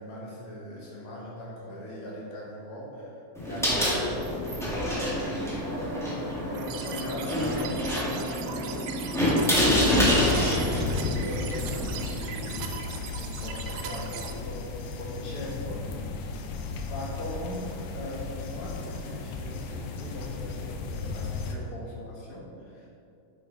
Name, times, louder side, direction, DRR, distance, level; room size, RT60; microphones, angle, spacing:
voice 1, 0.0-8.9 9.4-15.9 16.9-23.0, left 1 dB, 55° left, -4 dB, 2.9 m, -39 dB
sound 1, 3.4-12.1, left 1 dB, 5° left, 0.3 m, -27 dB
sound 2, 6.5-14.3, right 8 dB, 85° right, 2.4 m, -40 dB
sound 3, 9.7-21.6, left 4 dB, 80° left, 2.4 m, -35 dB
9.4 x 8.2 x 4.0 m, 2.6 s
omnidirectional pair, 4.0 m